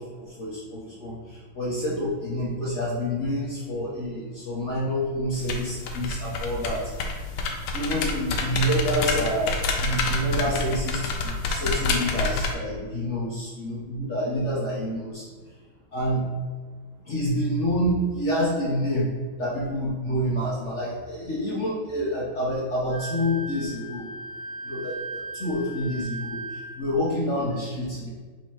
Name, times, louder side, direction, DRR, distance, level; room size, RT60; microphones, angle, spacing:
voice 1, 0.0-5.5 5.9-6.9 7.7-11.0 11.2-15.2 15.9-16.3 17.1-24.1 24.6-28.1, equal, 65° left, -6 dB, 0.7 m, -28 dB
sound 1, 5.3-12.5, left 3 dB, 85° left, 1.5 m, -28 dB
Wind instrument woodwind instrument, 22.9-26.8, right 2 dB, 80° right, 0.9 m, -37 dB
4.2 x 2.8 x 4.5 m, 1.4 s
omnidirectional pair, 2.3 m